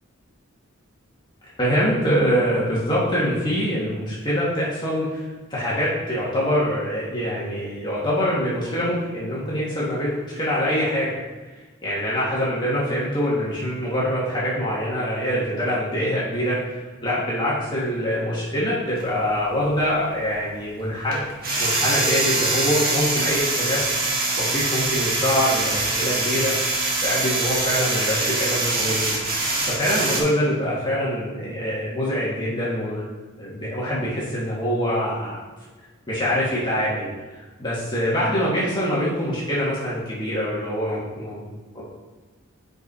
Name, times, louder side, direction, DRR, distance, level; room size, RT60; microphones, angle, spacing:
voice 1, 1.6-5.2 5.5-11.2 11.8-21.2 21.6-23.8 24.3-26.5 27.0-29.0 29.3-33.0 33.4-35.4 36.1-41.5 41.7-41.8, equal, 20° left, -8 dB, 1.6 m, -24 dB
sound 1, 19.0-19.1 21.1-30.2, right 2 dB, 45° right, 1.7 m, -24 dB
7.9 x 5.2 x 4.2 m, 1.3 s
head